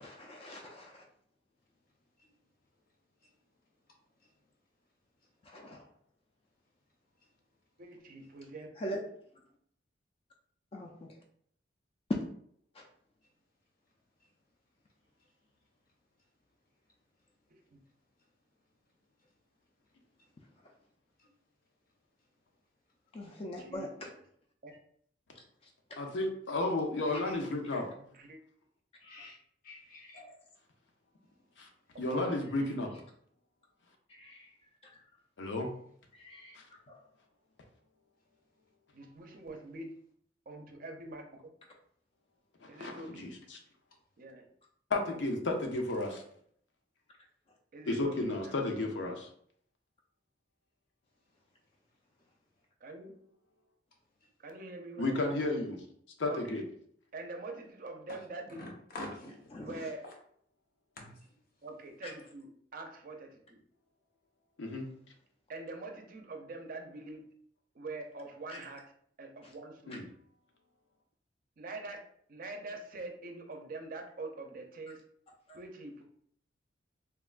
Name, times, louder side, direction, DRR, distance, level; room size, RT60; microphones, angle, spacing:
voice 1, 0.0-1.0 5.5-5.8 8.8-9.0 10.7-11.1 12.8-12.9 23.1-24.1 29.0-29.3 30.1-30.3 34.2-34.5 36.2-36.6 36.9-37.0 59.5-59.8 62.0-62.1, equal, 35° left, 1 dB, 0.3 m, -43 dB
voice 2, 7.8-8.7 17.5-17.8 23.6-23.9 24.6-24.7 27.0-27.4 28.0-28.4 31.9-32.5 38.9-40.0 40.5-41.3 42.7-43.3 44.2-44.5 47.7-48.6 52.8-53.1 54.4-55.1 56.3-56.6 57.1-58.7 59.6-60.0 61.6-63.6 65.5-67.3 67.7-68.9 69.2-70.0 71.6-72.0 72.3-75.0 75.5-76.0, right 2 dB, 50° right, 4 dB, 0.5 m, -44 dB
voice 3, 26.0-27.9 31.6-31.7 32.0-32.9 35.4-35.7 36.6-36.7 42.6-43.6 44.9-46.2 47.9-49.3 55.0-55.8 56.2-56.6 64.6-64.8 69.9-70.0, left 2 dB, 90° left, 3 dB, 0.6 m, -33 dB
voice 4, 29.6-30.2 36.2-36.5 58.6-59.3 60.0-60.1 61.0-61.2, left 1 dB, 55° left, 0 dB, 0.7 m, -46 dB
3.5 x 2.2 x 2.4 m, 0.64 s
head